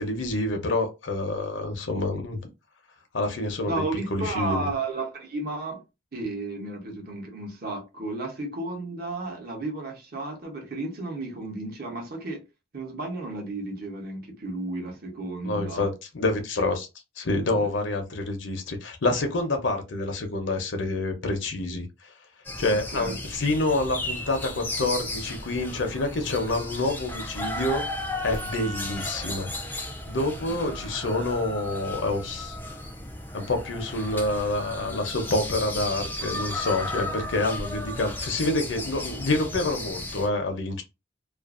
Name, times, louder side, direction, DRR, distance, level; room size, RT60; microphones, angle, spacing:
voice 1, 0.0-2.4 3.1-3.8 4.1-4.7 15.4-16.9 17.2-22.1 22.6-27.8 28.2-29.7 30.1-32.6 33.3-40.8, left 2 dB, 75° left, 0.7 m, -27 dB
voice 2, 3.6-5.8 6.1-12.4 12.7-15.9 17.5-17.7 22.6-23.2 28.5-28.8 30.4-30.6, right 2 dB, 50° right, 0.8 m, -33 dB
sound 1, 22.4-40.3, left 1 dB, 10° left, 0.4 m, -35 dB
2.5 x 2.4 x 2.4 m
head